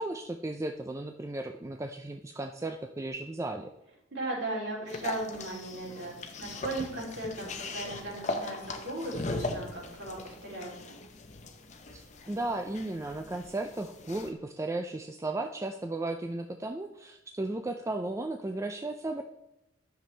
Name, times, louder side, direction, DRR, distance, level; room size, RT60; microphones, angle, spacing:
voice 1, 0.0-3.7 11.9-19.2, right 2 dB, 15° right, 5 dB, 0.3 m, -35 dB
voice 2, 4.1-10.7, right 2 dB, 55° right, -4 dB, 3.1 m, -37 dB
sound 1, 4.9-14.3, left 2 dB, 35° left, 0.7 m, -39 dB
10.5 x 6.9 x 3.3 m, 0.87 s
head